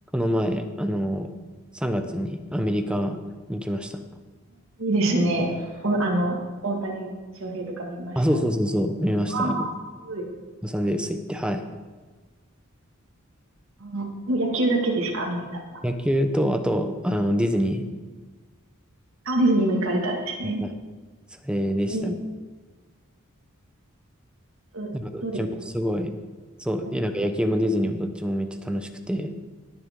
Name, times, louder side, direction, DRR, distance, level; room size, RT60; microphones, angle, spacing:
voice 1, 0.1-1.3 1.7-3.2 3.5-4.0 8.2-9.6 10.6-11.6 15.8-17.8 20.6-20.7 21.4-22.2 24.9-25.5 25.7-26.1 26.6-29.3, equal, 5° right, 7 dB, 0.7 m, -25 dB
voice 2, 4.8-7.1 7.4-8.2 9.3-9.7 10.0-10.2 13.8-15.8 19.3-20.6 21.9-22.2 24.7-24.9 25.2-25.4 26.8-27.0, right 2 dB, 80° right, -1 dB, 2.0 m, -25 dB
18.5 x 7.0 x 3.6 m, 1.4 s
head